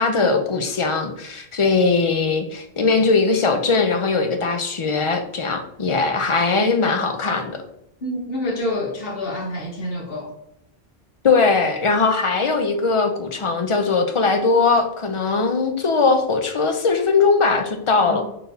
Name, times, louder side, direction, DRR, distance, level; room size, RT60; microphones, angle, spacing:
voice 1, 0.0-7.6 11.2-18.2, left 4 dB, 45° left, 5 dB, 0.4 m, -20 dB
voice 2, 8.0-10.3 18.1-18.2, left 1 dB, 65° left, -1 dB, 1.3 m, -27 dB
4.5 x 3.3 x 2.6 m, 0.79 s
omnidirectional pair, 1.1 m